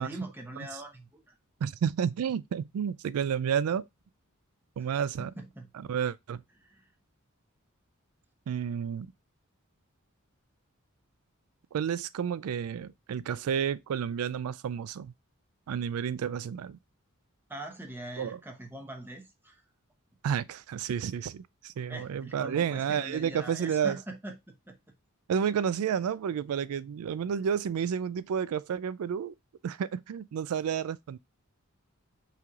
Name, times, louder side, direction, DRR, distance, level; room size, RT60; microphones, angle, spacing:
voice 1, 0.0-1.3 4.8-4.9 5.2-5.7 6.6-6.8 17.5-19.6 21.9-24.8, right 1 dB, 10° right, 0.9 m, -42 dB
voice 2, 1.6-3.9 4.8-5.3 5.7-6.4 8.5-9.1 11.7-15.1 15.7-16.8 18.2-18.4 20.2-24.0 25.3-29.3 29.6-31.2, right 7 dB, 80° right, 0.3 m, -31 dB
5.8 x 3.2 x 2.3 m
head